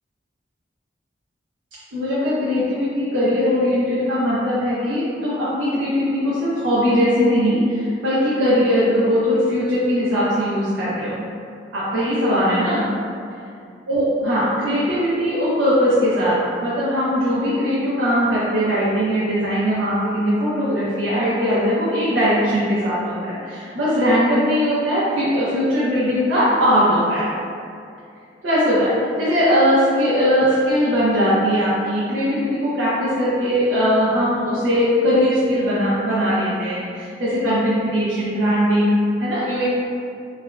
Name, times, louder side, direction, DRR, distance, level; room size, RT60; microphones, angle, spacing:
voice 1, 1.9-11.2 11.7-12.9 13.9-27.3 28.4-39.7, equal, 90° right, -11 dB, 0.7 m, -20 dB
3.3 x 2.2 x 2.3 m, 2.4 s
head